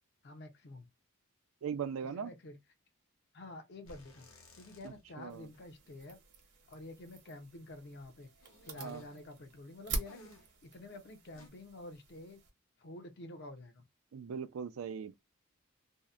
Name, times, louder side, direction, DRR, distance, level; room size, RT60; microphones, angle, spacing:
voice 1, 0.2-0.9 2.1-2.6 3.3-4.3 4.5-6.2 6.7-8.3 8.6-10.3 10.6-12.4 12.8-13.8, left 2 dB, 50° left, 0.5 m, -49 dB
voice 2, 1.6-2.3 4.8-5.5 8.8-9.0 14.1-15.1, right 7 dB, 75° right, 0.4 m, -40 dB
sound 1, 3.9-5.3 5.5-5.6 8.4-9.2 10.0-10.6 11.3-11.5, left 1 dB, 70° left, 1.0 m, -57 dB
sound 2, 5.3-12.5, right 3 dB, 55° right, 0.8 m, -46 dB
2.7 x 2.0 x 2.3 m
head